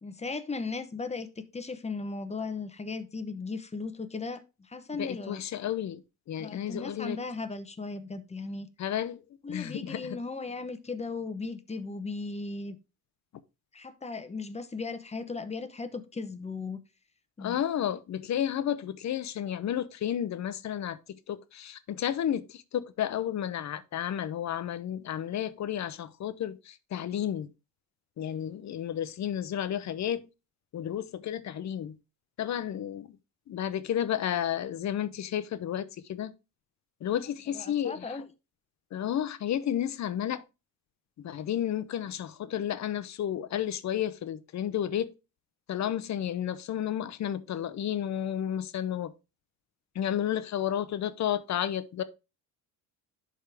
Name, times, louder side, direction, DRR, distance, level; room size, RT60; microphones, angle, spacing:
voice 1, 0.0-5.4 6.4-8.7 9.4-12.8 13.7-16.8 17.4-17.6 37.5-38.2, left 3 dB, 15° left, 0.9 m, -37 dB
voice 2, 4.9-7.2 8.8-9.2 9.5-10.2 17.4-27.5 28.2-30.3 30.7-32.0 32.4-33.2 33.5-36.3 37.0-38.2 38.9-40.4 41.2-45.1 45.7-49.1 49.9-52.0, left 10 dB, 50° left, 0.7 m, -32 dB
11.0 x 3.7 x 3.4 m
cardioid pair, 100°, 37 cm